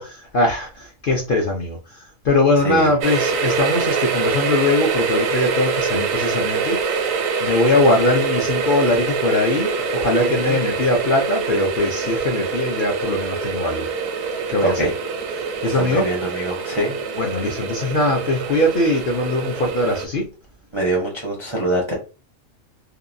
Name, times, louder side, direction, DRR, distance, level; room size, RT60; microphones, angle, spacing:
voice 1, 0.0-7.2 7.4-13.9 14.5-14.9 15.6-16.1 17.1-20.3, left 2 dB, 60° left, 0 dB, 0.6 m, -21 dB
sound 1, 3.0-20.1, right 5 dB, 80° right, 1.0 m, -24 dB
voice 2, 10.2-10.6 14.6-14.9 15.6-16.9 20.7-21.9, right 1 dB, 40° right, -2 dB, 0.4 m, -24 dB
2.8 x 2.2 x 2.5 m, 0.32 s
omnidirectional pair, 1.4 m